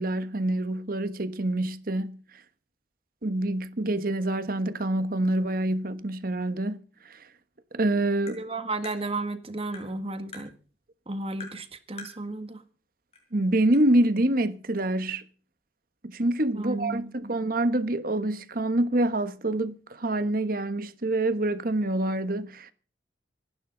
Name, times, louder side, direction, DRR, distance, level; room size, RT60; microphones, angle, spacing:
voice 1, 0.0-2.2 3.2-6.8 7.1-7.2 7.7-8.4 13.3-15.2 16.0-22.7, right 1 dB, 55° right, 1.3 m, -26 dB
Tap, 8.3-8.4 8.8-9.0 9.7-9.9 10.3-10.5 11.4-11.6 12.0-12.2 13.1-13.2 13.7-13.8, left 4 dB, 35° left, 5.8 m, -43 dB
voice 2, 8.4-10.5 11.1-12.6 16.5-17.4, right 2 dB, 35° right, 1.7 m, -33 dB
26.0 x 12.0 x 4.0 m
head